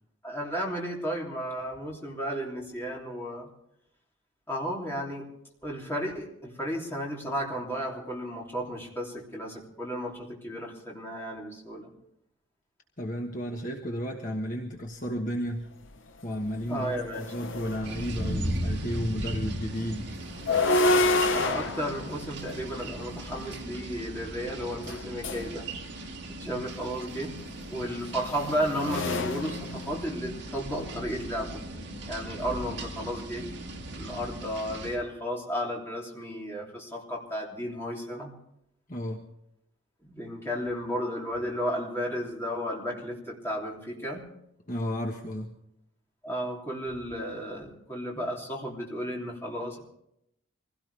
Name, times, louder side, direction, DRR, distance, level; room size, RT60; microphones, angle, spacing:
voice 1, 0.2-3.5 4.5-5.3 5.6-11.9 16.7-17.2 20.7-20.9 21.3-25.7 26.4-27.3 27.7-31.6 32.0-33.4 33.9-38.3 40.0-44.3 46.2-49.8, equal, 10° left, -3 dB, 3.1 m, -33 dB
voice 2, 13.0-15.7 16.2-20.1 38.9-39.2 44.7-45.6, equal, 40° left, 1 dB, 1.4 m, -33 dB
sound 1, 15.9-16.0 16.4-18.4 20.2-23.5 24.8-25.5 27.0-30.4, left 2 dB, 65° left, 0.9 m, -29 dB
sound 2, 17.8-35.0, right 1 dB, 55° right, 2.3 m, -38 dB
25.0 x 17.0 x 3.4 m, 0.77 s
head